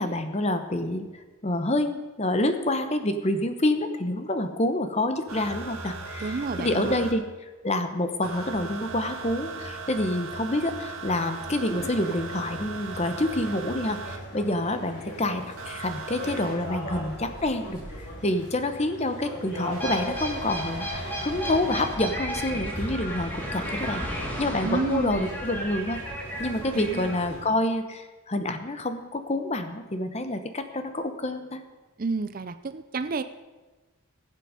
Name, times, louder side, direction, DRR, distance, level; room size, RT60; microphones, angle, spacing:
voice 1, 0.0-7.3 7.6-26.0 26.4-31.6, left 1 dB, 30° left, 8 dB, 0.9 m, -28 dB
sound 1, 5.3-7.1 8.2-14.2 15.6-18.5 19.7-22.0 23.2-23.3, right 3 dB, 65° right, 1.7 m, -38 dB
voice 2, 6.2-7.1 24.6-25.3 26.7-27.1 32.0-33.2, right 4 dB, 40° right, 11 dB, 0.5 m, -30 dB
sound 2, 11.6-27.4, equal, 50° left, 3.6 m, -41 dB
sound 3, 19.5-27.4, equal, 10° left, 1.7 m, -34 dB
20.0 x 7.7 x 5.0 m, 1.2 s
head